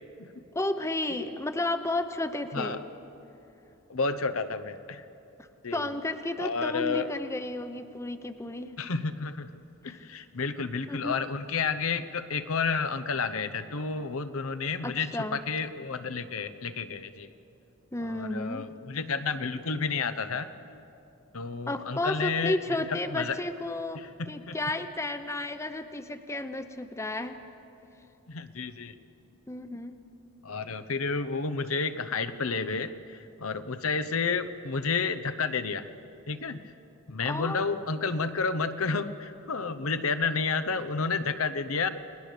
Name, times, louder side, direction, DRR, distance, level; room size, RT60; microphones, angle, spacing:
voice 1, 0.5-2.8 5.7-8.7 10.9-11.2 14.8-15.4 17.9-18.7 21.7-24.0 24.3-27.4 29.5-30.0 37.2-37.7, left 2 dB, 15° left, 9 dB, 0.7 m, -32 dB
voice 2, 3.9-5.0 5.6-5.9 6.4-7.1 8.8-9.5 9.8-17.3 18.1-20.5 21.3-22.6 22.9-23.4 24.2-24.5 28.3-28.9 30.4-35.9 36.3-36.6 37.1-41.9, left 4 dB, 85° left, 10 dB, 0.9 m, -31 dB
30.0 x 19.0 x 6.7 m, 2.8 s
head